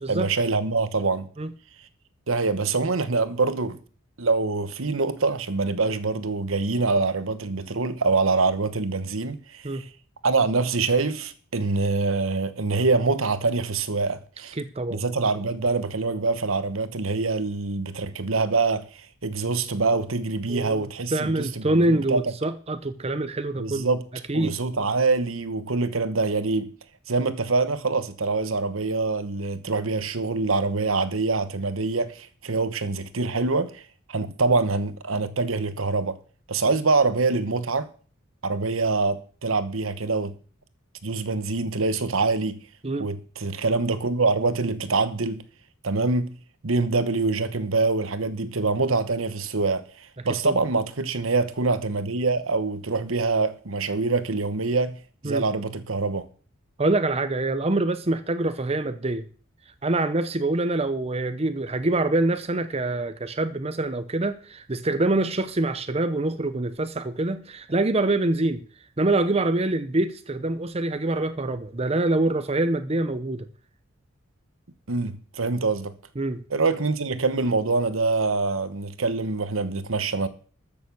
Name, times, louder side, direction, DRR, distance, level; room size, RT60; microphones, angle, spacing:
voice 1, 0.1-1.2 2.3-3.8 4.2-9.9 10.2-14.6 14.9-18.9 19.2-22.2 23.6-24.0 24.3-26.7 27.1-33.8 34.1-36.2 36.5-37.9 38.4-40.3 41.0-42.6 43.0-45.4 45.8-46.4 46.6-49.8 50.2-55.0 55.2-56.2 74.9-75.9 76.5-80.3, right 3 dB, 75° right, 1.1 m, -25 dB
voice 2, 14.6-15.0 20.5-23.9 24.3-24.6 42.8-43.1 50.4-50.6 55.2-55.4 56.8-59.3 59.8-68.6 69.0-73.5 76.2-76.4, right 2 dB, 30° right, 0.7 m, -25 dB
13.0 x 6.9 x 7.0 m
head